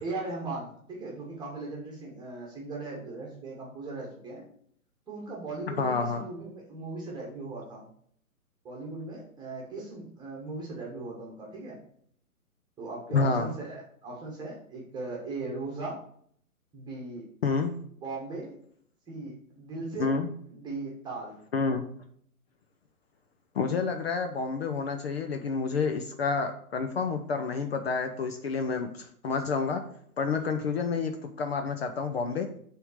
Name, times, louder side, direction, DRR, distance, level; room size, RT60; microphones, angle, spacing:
voice 1, 0.0-4.5 5.1-7.9 8.6-11.8 12.8-16.0 16.7-17.2 18.0-18.5 19.1-20.1 20.5-21.4, right 3 dB, 10° right, -3 dB, 1.4 m, -38 dB
voice 2, 5.8-6.2 13.1-13.5 17.4-17.7 20.0-20.3 21.5-21.8 23.5-29.8 30.2-32.5, left 4 dB, 45° left, 6 dB, 0.7 m, -29 dB
6.9 x 3.7 x 6.2 m, 0.63 s
figure-of-eight pair, 135°, 45 cm